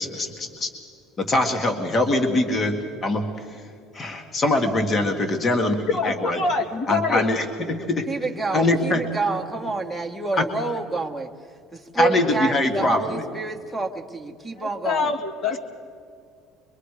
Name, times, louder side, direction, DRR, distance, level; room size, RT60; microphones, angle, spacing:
voice 1, 1.3-2.7 3.0-3.2 4.0-5.1 5.4-5.7 6.0-6.4 6.9-8.0 8.5-9.0 10.4-10.5 12.0-13.2, left 2 dB, 30° left, 4 dB, 1.9 m, -22 dB
voice 2, 5.9-7.3 14.6-15.6, left 4 dB, 50° left, 3 dB, 2.3 m, -25 dB
voice 3, 8.1-11.3 11.7-15.1, right 3 dB, ahead, -1 dB, 1.6 m, -28 dB
23.5 x 23.0 x 4.9 m, 2.3 s
cardioid pair, 120°, 0 cm